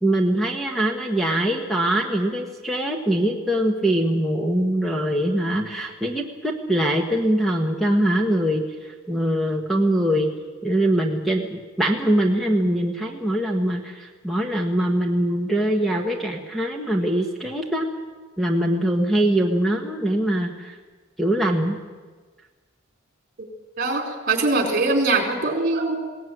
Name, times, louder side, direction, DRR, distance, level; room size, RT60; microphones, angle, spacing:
voice 1, 0.0-10.3 10.6-17.9 18.4-20.8 21.2-21.8, right 1 dB, ahead, 1 dB, 1.5 m, -22 dB
voice 2, 23.8-26.0, right 3 dB, 45° right, 2 dB, 4.5 m, -22 dB
21.0 x 18.0 x 9.4 m, 1.4 s
head